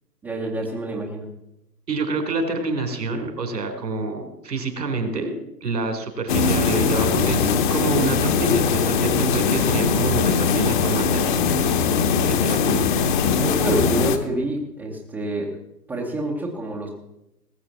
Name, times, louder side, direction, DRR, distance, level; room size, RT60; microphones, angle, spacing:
voice 1, 0.2-1.3 13.3-15.6 15.9-16.9, right 1 dB, 5° right, -6 dB, 0.7 m, -27 dB
voice 2, 1.9-5.3 5.6-11.4 12.2-12.8, right 3 dB, 80° right, 6 dB, 3.7 m, -27 dB
sound 1, 6.3-14.2, left 6 dB, 30° left, 1.0 m, -21 dB
19.5 x 6.8 x 7.1 m, 0.88 s
hypercardioid pair, 145°, 49 cm